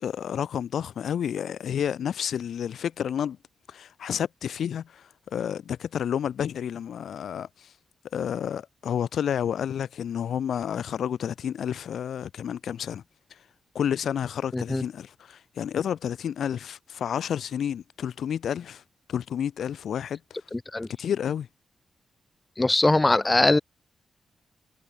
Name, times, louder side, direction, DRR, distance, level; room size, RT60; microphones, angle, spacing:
voice 1, 0.0-3.4 3.7-7.7 8.1-13.0 13.7-18.8 19.1-20.4 21.0-21.5, left 9 dB, 80° left, 1.1 m, -30 dB
voice 2, 20.5-20.9 22.6-23.6, left 2 dB, 20° left, 0.4 m, -21 dB
cardioid pair, 105°, 0 cm